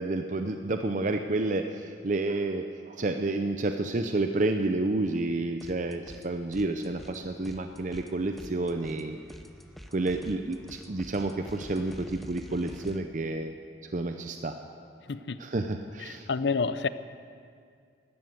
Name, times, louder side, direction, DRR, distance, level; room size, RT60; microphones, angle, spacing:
voice 1, 0.0-9.2 9.9-13.5 13.9-14.5 15.4-16.3, right 2 dB, 45° right, 6 dB, 0.6 m, -30 dB
sound 1, 5.6-6.3 6.5-13.0, equal, ahead, 0.6 m, -47 dB
voice 2, 15.1-15.4 16.0-16.9, left 4 dB, 75° left, 13 dB, 0.6 m, -29 dB
13.5 x 12.5 x 8.0 m, 2.2 s
head